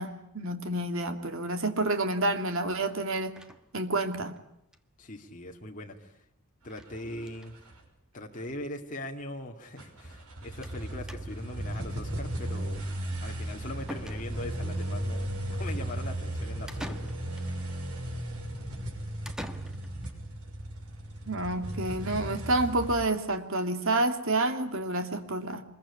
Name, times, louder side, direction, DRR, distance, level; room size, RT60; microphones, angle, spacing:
voice 1, 0.0-3.4 3.7-4.3 21.3-25.6, right 2 dB, 60° right, 7 dB, 2.6 m, -29 dB
sound 1, 3.4-4.4 4.7-4.8 5.1-5.2 5.4-5.5 6.7-6.9 7.2-7.5 8.4-8.5 8.8-8.9 10.6-10.8 11.1-11.6 13.3-13.4 13.9-14.7 16.7-17.5 19.2-20.1, equal, 5° right, 1.5 m, -45 dB
voice 2, 5.0-6.2 6.6-7.5 8.1-12.8 13.2-17.1, left 1 dB, 35° left, 1 dB, 2.3 m, -41 dB
sound 2, 6.6-7.8 8.5-8.6 9.8-23.0, right 1 dB, 90° right, 6.2 m, -36 dB
25.5 x 22.0 x 9.9 m, 0.77 s
head